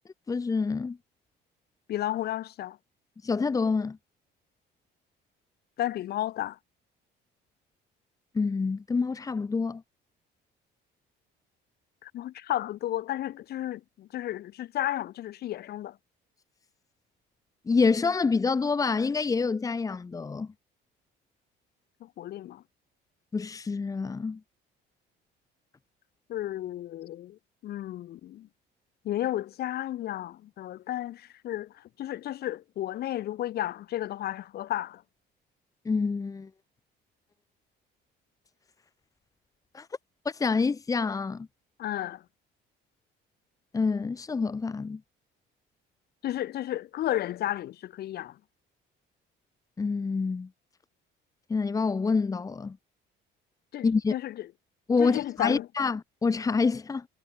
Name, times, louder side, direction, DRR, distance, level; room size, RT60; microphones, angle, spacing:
voice 1, 0.3-1.0 3.2-4.0 8.3-9.8 17.7-20.5 23.3-24.4 35.9-36.5 39.7-39.9 40.2-41.5 43.7-45.0 49.8-50.5 51.5-52.8 53.8-54.1 54.9-57.1, left 4 dB, 20° left, 2.1 m, -27 dB
voice 2, 1.9-2.8 5.8-6.6 12.0-16.0 22.0-22.6 26.3-28.5 29.0-35.0 41.8-42.2 46.2-48.4 53.7-54.3 55.0-55.7, left 13 dB, 55° left, 5.5 m, -33 dB
cardioid pair, 165°, 19 cm